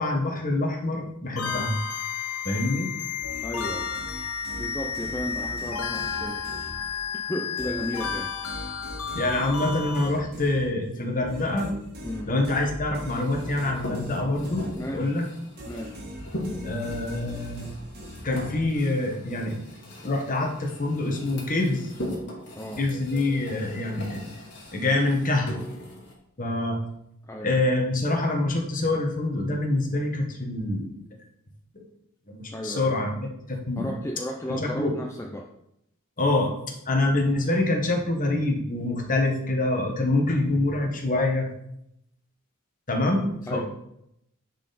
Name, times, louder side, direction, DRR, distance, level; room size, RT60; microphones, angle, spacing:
voice 1, 0.0-1.8 2.4-2.9 9.1-11.7 12.3-15.3 16.6-17.7 18.2-19.6 20.0-21.9 22.8-24.2 24.7-25.5 26.4-26.8 27.4-31.0 31.7-31.9 32.3-33.9 34.5-34.9 36.2-36.5 36.9-41.5 42.9-43.6, left 2 dB, 40° left, 2 dB, 1.4 m, -26 dB
sound 1, 1.4-10.1, left 6 dB, 85° left, 0.8 m, -32 dB
sound 2, 3.2-7.2 7.6-15.2 15.6-19.0, equal, 50° right, 1.7 m, -41 dB
voice 2, 3.4-3.9 4.6-6.5 7.3-8.3 12.0-12.3 14.8-15.1 15.7-16.0 22.6-22.8 27.3-27.5 32.5-32.9 33.8-35.5 43.5-43.6, equal, 15° left, 1 dB, 0.6 m, -34 dB
sound 3, 13.0-26.1, left 1 dB, 55° left, 2.0 m, -40 dB
10.0 x 4.3 x 4.2 m, 0.78 s
head